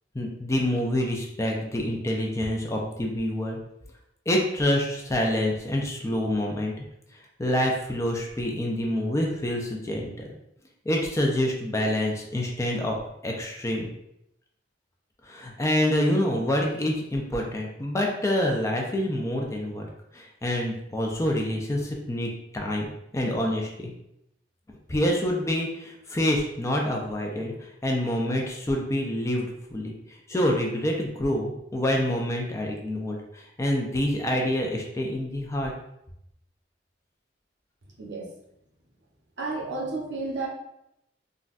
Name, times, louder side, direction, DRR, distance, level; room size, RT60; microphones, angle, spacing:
voice 1, 0.1-3.6 4.3-6.7 7.4-10.3 10.9-12.9 13.2-13.9 15.2-19.9 20.1-23.9 24.7-27.5 27.8-29.9 30.3-35.7, left 1 dB, 15° left, 0 dB, 0.4 m, -27 dB
voice 2, 38.0-38.3 39.4-40.5, right 3 dB, 80° right, -1 dB, 0.7 m, -31 dB
3.8 x 2.2 x 2.4 m, 0.80 s
head